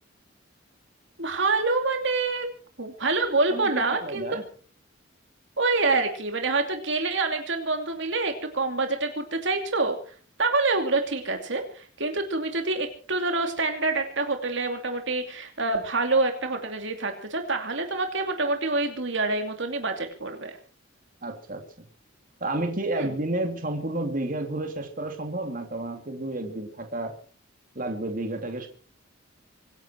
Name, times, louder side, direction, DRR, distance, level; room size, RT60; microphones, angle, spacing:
voice 1, 1.2-2.5 2.8-4.3 5.6-10.0 10.4-20.6 22.9-23.1, right 3 dB, 65° right, 5 dB, 2.7 m, -26 dB
voice 2, 3.5-4.4 21.2-21.6 22.4-27.2 27.7-28.7, right 2 dB, 40° right, 5 dB, 3.0 m, -31 dB
25.5 x 11.5 x 4.6 m, 0.41 s
head